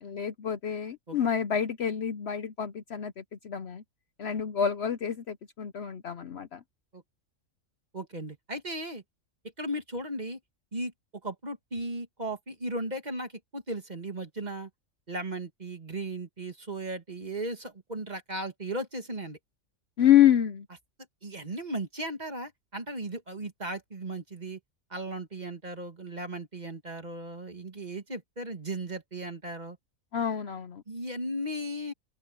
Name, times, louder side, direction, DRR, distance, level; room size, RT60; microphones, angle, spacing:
voice 1, 0.0-3.8 4.2-6.6 20.0-20.7 30.1-30.8, left 10 dB, 55° left, 0.9 m, -27 dB
voice 2, 7.9-9.0 9.6-10.4 10.7-10.9 11.2-14.7 15.1-19.4 21.2-24.6 24.9-29.8 30.9-31.9, right 1 dB, 30° right, 2.2 m, -36 dB
open air
omnidirectional pair, 1.4 m